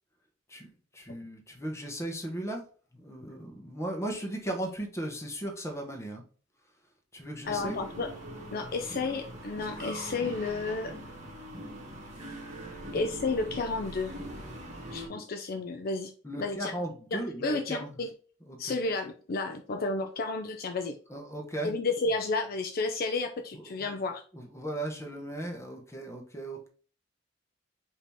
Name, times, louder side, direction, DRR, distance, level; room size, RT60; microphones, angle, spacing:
voice 1, 0.5-2.6 2.9-6.2 7.1-7.8 15.1-15.2 16.2-18.0 18.5-18.8 21.1-21.7 23.5-23.9 24.3-26.7, right 1 dB, 15° left, 2 dB, 1.0 m, -37 dB
sound 1, 7.4-15.1, right 1 dB, 40° right, 1.3 m, -42 dB
voice 2, 7.5-8.1 8.5-10.9 12.9-14.1 14.9-16.1 16.4-16.7 17.1-18.1 18.6-21.0 21.6-24.2, left 3 dB, 50° left, 5 dB, 0.5 m, -32 dB
5.1 x 2.8 x 3.5 m, 0.40 s
head